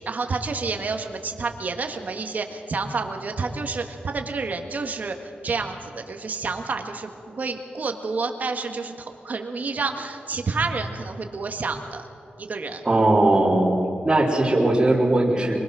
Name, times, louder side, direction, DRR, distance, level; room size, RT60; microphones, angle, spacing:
voice 1, 0.0-12.0 12.4-12.8, right 4 dB, 50° right, 5 dB, 1.8 m, -29 dB
voice 2, 12.8-13.8 14.0-15.6, right 2 dB, 20° right, -6 dB, 3.2 m, -19 dB
23.5 x 21.0 x 6.3 m, 2.6 s
wide cardioid pair, 140°, 3 cm